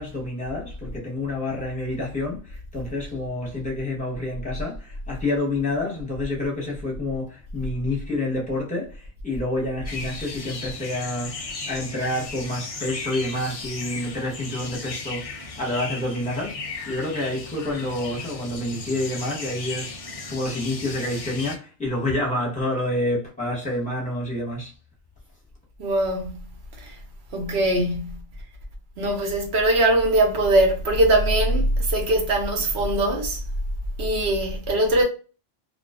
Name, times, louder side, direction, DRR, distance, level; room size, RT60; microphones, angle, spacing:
voice 1, 0.0-20.0 20.3-24.7, left 1 dB, 5° left, 0.9 m, -28 dB
sound 1, 9.8-21.6, left 3 dB, 70° left, 0.3 m, -36 dB
voice 2, 25.8-26.4 26.8-26.9 27.3-28.2 29.0-33.4 34.0-35.0, right 1 dB, 65° right, 0.9 m, -21 dB
2.4 x 2.3 x 2.3 m
omnidirectional pair, 1.3 m